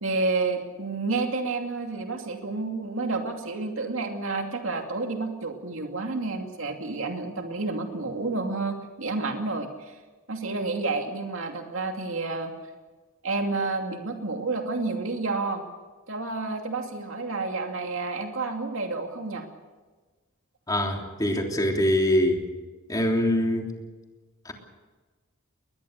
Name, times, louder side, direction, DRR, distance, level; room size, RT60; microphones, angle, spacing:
voice 1, 0.0-9.9 10.3-12.5 13.2-15.6 16.1-19.5, right 3 dB, 65° right, 3 dB, 2.7 m, -30 dB
voice 2, 20.7-22.5 22.9-23.7 24.4-24.5, left 1 dB, 20° left, 2 dB, 3.3 m, -24 dB
21.5 x 21.0 x 6.6 m, 1.3 s
head